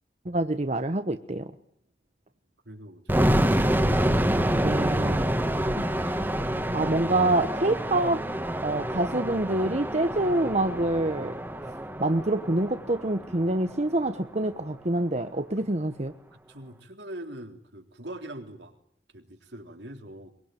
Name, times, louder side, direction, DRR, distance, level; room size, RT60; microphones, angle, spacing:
voice 1, 0.2-1.5 4.6-5.4 6.0-6.2 6.7-8.2 8.6-11.4 12.0-16.1, right 2 dB, 40° right, 8 dB, 1.1 m, -26 dB
voice 2, 2.7-3.8 15.6-15.7 16.3-18.7 19.1-20.3, right 1 dB, 75° right, 5 dB, 3.6 m, -43 dB
sound 1, 3.1-14.0, right 1 dB, 10° right, 2.3 m, -27 dB
23.5 x 23.0 x 9.3 m, 0.67 s
head